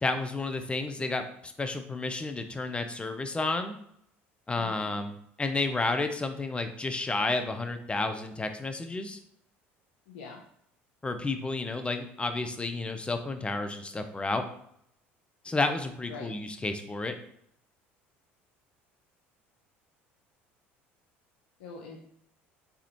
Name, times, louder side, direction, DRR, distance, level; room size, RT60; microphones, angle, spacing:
voice 1, 0.0-3.7 4.5-9.2 11.0-14.4 15.4-17.2, left 3 dB, 15° left, 7 dB, 0.6 m, -31 dB
voice 2, 4.6-4.9 10.1-10.4 16.1-16.4 21.6-22.0, left 4 dB, 80° left, -1 dB, 0.6 m, -43 dB
3.6 x 3.5 x 2.9 m, 0.70 s
hypercardioid pair, 70°, 6 cm